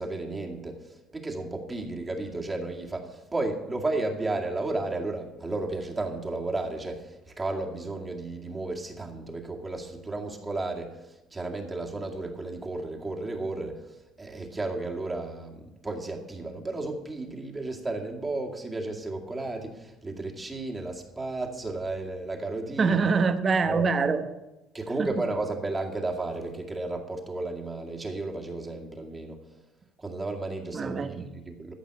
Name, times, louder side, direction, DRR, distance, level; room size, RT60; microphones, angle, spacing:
voice 1, 0.0-23.0 23.6-23.9 24.7-29.4 30.0-31.7, right 2 dB, 20° right, 1 dB, 2.1 m, -33 dB
voice 2, 22.8-24.2 25.0-25.2 30.7-31.3, right 4 dB, 35° right, 9 dB, 1.2 m, -25 dB
14.0 x 5.5 x 8.8 m, 0.98 s
cardioid pair, 110°, 0 cm